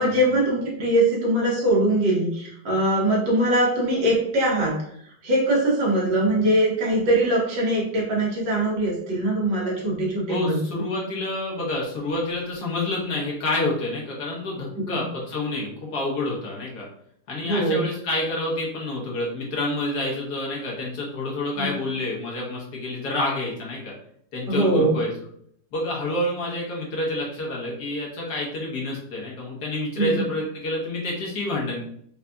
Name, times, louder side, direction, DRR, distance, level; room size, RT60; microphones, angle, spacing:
voice 1, 0.0-4.8 5.2-10.6 14.8-15.0 17.4-17.8 21.6-21.8 24.5-25.0 30.0-30.2, right 1 dB, 85° right, -4 dB, 1.9 m, -22 dB
voice 2, 10.3-16.9 17.3-23.9 24.3-25.1 25.7-31.8, left 2 dB, 70° left, -3 dB, 1.6 m, -28 dB
4.8 x 2.7 x 2.2 m, 0.68 s
omnidirectional pair, 1.9 m